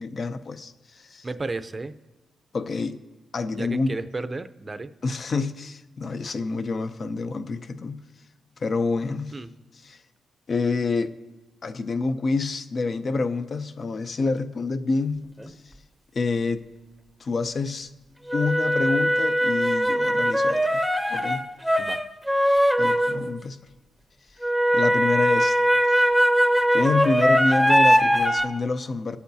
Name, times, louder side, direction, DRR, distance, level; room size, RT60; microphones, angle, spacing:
voice 1, 0.0-1.3 2.5-3.0 3.3-4.0 5.0-8.0 8.6-9.4 9.8-10.0 10.5-11.1 11.6-15.5 16.1-16.6 17.2-17.9 18.3-20.8 21.1-21.5 22.8-23.6 24.7-25.6 25.9-26.0 26.7-29.2, left 3 dB, 50° left, 10 dB, 0.6 m, -27 dB
voice 2, 1.2-1.9 3.5-4.9 9.3-9.5 21.8-22.0, right 3 dB, 30° right, 12 dB, 0.5 m, -33 dB
sound 1, 15.4-15.5 18.3-23.3 24.4-28.4, equal, ahead, 0.8 m, -21 dB
20.5 x 8.4 x 2.8 m, 1.2 s
cardioid pair, 80°, 0 cm